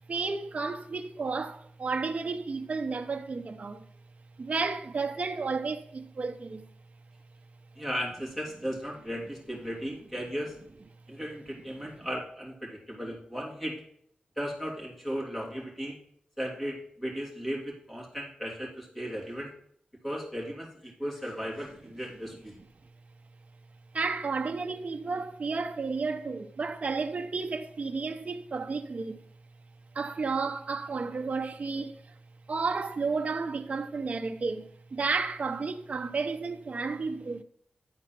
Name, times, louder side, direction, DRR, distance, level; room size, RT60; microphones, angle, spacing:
voice 1, 0.1-3.9 4.4-6.7 23.9-29.2 29.9-32.1 32.5-37.4, right 4 dB, 50° right, 0.6 m, -32 dB
voice 2, 7.8-10.6 11.1-13.8 14.4-16.0 16.4-19.5 20.0-22.5, equal, 5° left, 3.0 m, -36 dB
11.0 x 4.3 x 5.8 m
wide cardioid pair, 90°, 3 cm